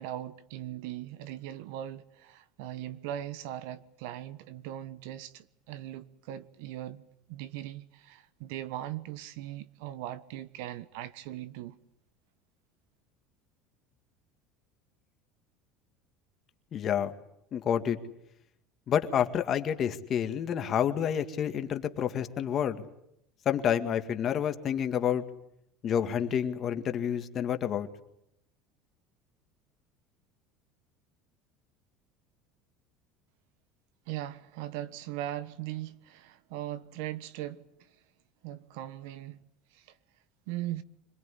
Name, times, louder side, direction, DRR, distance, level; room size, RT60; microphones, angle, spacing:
voice 1, 0.0-11.8 34.1-37.6 38.4-39.4 39.7-39.9 40.5-40.8, right 13 dB, 80° right, 1.3 m, -39 dB
voice 2, 16.7-17.1 17.5-18.0 18.9-22.8 23.5-25.2 25.8-27.9, left 9 dB, 35° left, 2.0 m, -29 dB
26.0 x 20.0 x 9.9 m
supercardioid pair, 135°, 0 cm